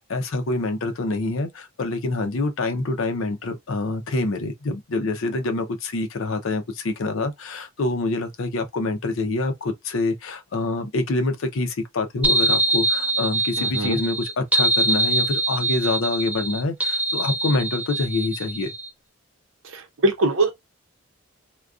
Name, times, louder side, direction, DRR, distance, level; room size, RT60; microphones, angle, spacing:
voice 1, 0.1-18.7, left 2 dB, 70° left, 0.5 m, -26 dB
sound 1, 12.2-18.9, right 2 dB, 5° right, 0.4 m, -23 dB
voice 2, 13.6-14.0 19.7-20.5, right 2 dB, 65° right, 0.7 m, -22 dB
2.4 x 2.2 x 2.3 m
head